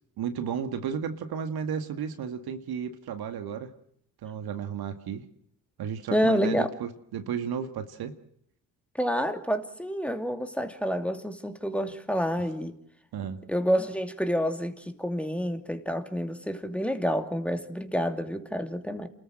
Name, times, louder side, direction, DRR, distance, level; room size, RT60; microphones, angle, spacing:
voice 1, 0.2-3.7 4.2-5.2 5.8-8.1 13.1-13.4, right 7 dB, 65° right, 2.0 m, -33 dB
voice 2, 6.1-6.7 8.9-12.8 13.5-19.1, equal, 5° left, 2.8 m, -28 dB
28.5 x 14.0 x 7.6 m
supercardioid pair, 60°, 40 cm